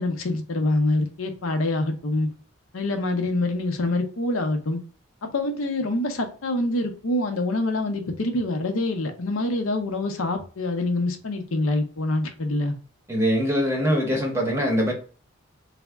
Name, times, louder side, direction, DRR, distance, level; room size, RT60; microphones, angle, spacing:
voice 1, 0.0-2.3 2.7-4.8 5.2-12.8, left 2 dB, 90° left, 5 dB, 0.7 m, -25 dB
voice 2, 13.1-14.9, equal, 15° right, 0 dB, 0.8 m, -22 dB
3.3 x 2.1 x 3.4 m, 0.38 s
head